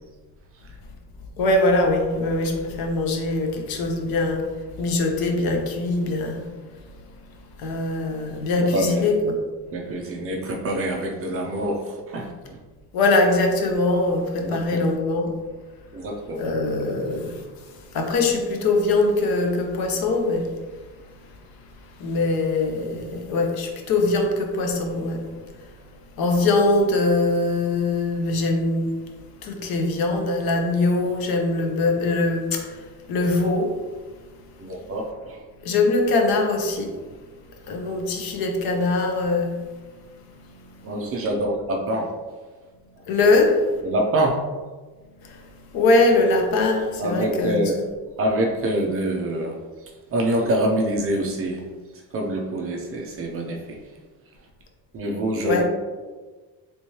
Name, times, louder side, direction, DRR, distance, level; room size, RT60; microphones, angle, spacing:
voice 1, 1.4-4.4 4.8-6.4 7.6-9.3 12.9-15.3 16.4-17.4 17.9-20.5 22.0-25.2 26.2-28.9 29.4-32.7 33.1-33.8 35.6-36.9 37.7-39.6 43.1-43.6 45.7-47.6 55.4-55.6, left 2 dB, 65° left, 3 dB, 0.7 m, -22 dB
voice 2, 8.6-9.0 9.7-12.3 14.4-14.9 15.9-16.5 34.6-35.4 40.8-42.1 43.8-44.4 47.0-47.7 48.2-49.6 50.1-51.6 52.1-53.6 54.9-55.6, right 1 dB, 35° right, 0 dB, 0.4 m, -25 dB
3.4 x 3.0 x 2.8 m, 1.3 s
cardioid pair, 175°, 39 cm